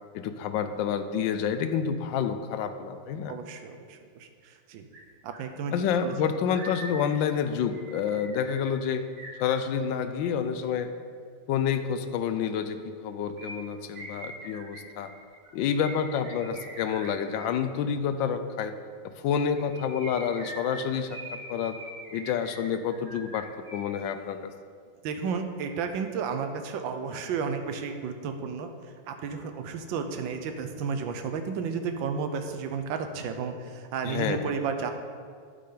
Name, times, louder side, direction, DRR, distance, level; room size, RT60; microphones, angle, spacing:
voice 1, 0.1-3.3 5.7-9.0 9.4-10.9 11.5-15.1 15.5-18.7 19.2-21.2 21.5-21.8 22.1-23.5 23.7-24.5 34.0-34.4, left 7 dB, 80° left, 9 dB, 1.3 m, -28 dB
voice 2, 3.3-4.9 5.2-5.7 6.0-6.1 25.0-28.7 29.1-34.9, right 5 dB, 80° right, 6 dB, 1.4 m, -32 dB
sound 1, 4.9-5.0 5.3-10.1 13.4-17.6 19.4-24.0 24.3-24.4, right 1 dB, 40° right, 1.7 m, -44 dB
11.5 x 5.7 x 3.8 m, 2.1 s
omnidirectional pair, 2.1 m